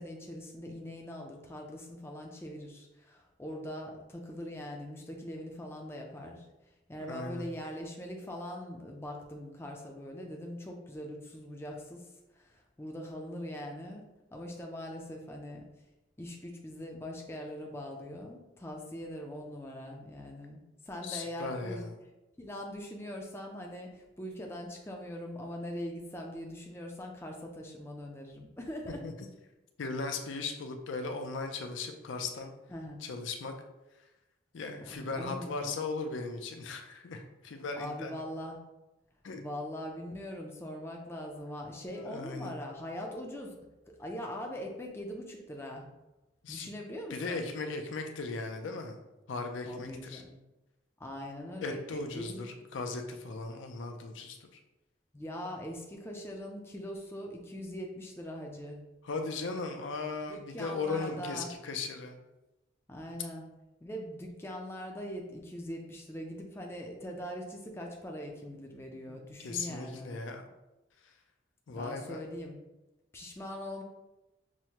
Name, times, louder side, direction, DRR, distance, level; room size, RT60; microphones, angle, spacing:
voice 1, 0.0-6.5 6.9-12.1 12.3-14.0 14.3-15.6 16.2-21.8 22.4-29.0 32.7-33.0 34.8-35.8 37.7-38.6 39.4-43.5 44.0-45.9 46.5-47.5 49.7-50.4 51.0-52.4 55.1-58.8 60.2-61.5 62.9-63.5 63.8-70.2 71.7-72.6 73.1-73.8, equal, 15° left, 1 dB, 0.4 m, -42 dB
voice 2, 7.0-7.5 21.0-21.9 29.0-29.1 29.8-32.5 33.0-33.5 34.5-38.1 39.2-39.4 41.9-42.5 46.4-46.7 47.1-49.0 49.3-50.2 51.6-54.6 59.0-62.2 69.1-69.2 69.4-70.4 71.0-71.1 71.7-72.2, left 3 dB, 80° left, 5 dB, 0.5 m, -37 dB
6.1 x 2.1 x 2.8 m, 1.0 s
head